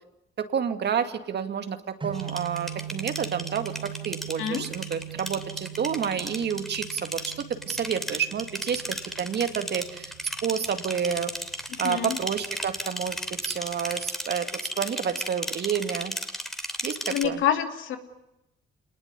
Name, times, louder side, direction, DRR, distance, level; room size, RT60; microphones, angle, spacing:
voice 1, 0.4-10.1 10.4-11.3 11.8-13.2 13.4-14.5 14.8-16.1 16.8-17.4, right 7 dB, 60° right, 8 dB, 2.3 m, -29 dB
sound 1, 2.0-14.1, right 10 dB, 25° right, 4.5 m, -42 dB
sound 2, 2.1-17.2, equal, ahead, 2.9 m, -35 dB
voice 2, 11.7-12.2 17.1-18.0, left 9 dB, 75° left, 6 dB, 2.9 m, -27 dB
27.5 x 20.0 x 9.7 m, 0.89 s
cardioid pair, 90°, 20 cm